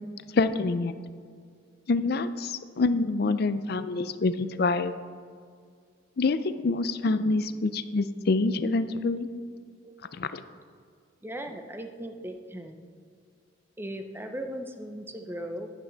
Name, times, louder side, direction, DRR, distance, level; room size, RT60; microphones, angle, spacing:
voice 1, 0.3-0.9 1.9-4.3 4.6-4.9 6.2-9.3 10.2-10.4, left 3 dB, 55° left, 12 dB, 0.5 m, -26 dB
voice 2, 11.2-12.8 13.8-15.7, right 1 dB, 10° right, 6 dB, 0.6 m, -38 dB
10.5 x 9.4 x 3.9 m, 2.2 s
head